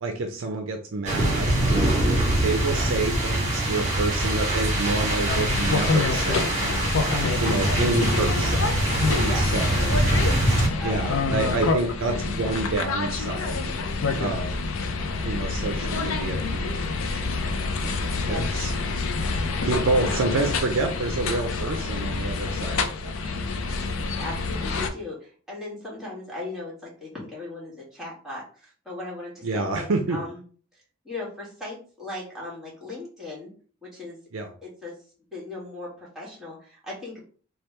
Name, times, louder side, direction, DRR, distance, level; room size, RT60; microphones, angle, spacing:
voice 1, 0.0-6.7 7.4-8.6 9.2-10.0 10.8-13.7 14.2-14.6 15.2-17.3 17.8-18.7 19.6-23.2 29.4-30.2 34.3-34.5, right 3 dB, 65° right, 4 dB, 0.5 m, -28 dB
sound 1, 1.0-10.7, right 1 dB, 35° right, 1.6 m, -24 dB
sound 2, 5.3-24.9, left 4 dB, 65° left, 0.5 m, -27 dB
voice 2, 6.9-8.1 9.2-10.0 10.8-12.0 18.2-18.4 24.1-30.4 31.0-33.5 33.8-34.2 34.6-34.9 35.3-37.2, left 2 dB, ahead, -6 dB, 1.5 m, -37 dB
3.2 x 2.3 x 4.2 m, 0.42 s
head